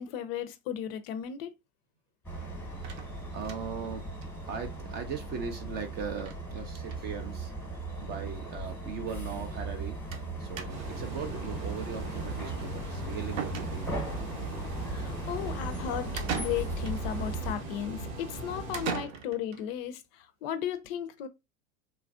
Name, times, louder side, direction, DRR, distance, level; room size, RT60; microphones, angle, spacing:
voice 1, 0.0-1.5 14.9-21.3, left 9 dB, 45° left, 0.4 m, -35 dB
sound 1, 2.2-17.5, right 2 dB, 5° left, 0.9 m, -37 dB
voice 2, 2.8-10.0 10.4-13.9, right 6 dB, 25° right, 0.3 m, -39 dB
sound 2, 2.8-3.9 4.2-4.3 4.6-4.7 4.9-5.0 6.2-6.4 6.7-7.0 7.9-8.0 8.3-8.4 10.1-10.3 10.6-11.0 12.8-12.9 13.4-14.1 16.2-17.0 18.7-19.6, right 7 dB, 65° right, 0.7 m, -38 dB
sound 3, 10.7-18.9, right 2 dB, 85° right, 1.0 m, -40 dB
3.1 x 2.4 x 2.3 m
hypercardioid pair, 100°, 41 cm